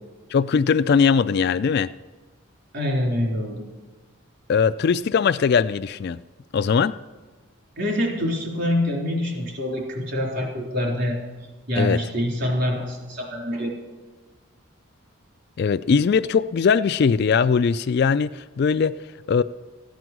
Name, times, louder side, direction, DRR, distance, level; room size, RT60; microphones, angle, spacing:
voice 1, 0.3-1.9 4.5-6.2 6.5-6.9 11.8-12.0 15.6-19.0 19.3-19.4, left 6 dB, 45° left, 12 dB, 0.3 m, -20 dB
voice 2, 2.7-3.7 7.8-11.2 11.7-13.7, left 1 dB, 50° right, -1 dB, 3.6 m, -25 dB
15.0 x 9.4 x 6.1 m, 1.3 s
head